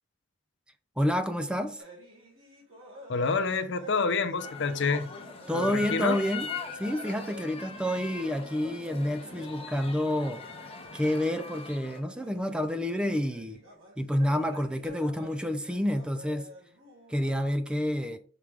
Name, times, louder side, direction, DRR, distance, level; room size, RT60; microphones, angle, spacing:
voice 1, 1.0-1.8 5.5-6.5 6.7-10.4 10.9-13.6 14.0-16.5 17.1-18.2, left 1 dB, 5° right, 0.4 m, -29 dB
sound 1, 1.8-17.4, left 1 dB, 90° right, 2.1 m, -50 dB
voice 2, 3.1-5.1 5.5-6.2, left 4 dB, 65° left, 0.7 m, -28 dB
sound 2, 4.4-12.0, left 5 dB, 30° left, 0.8 m, -41 dB
5.9 x 4.8 x 3.6 m
head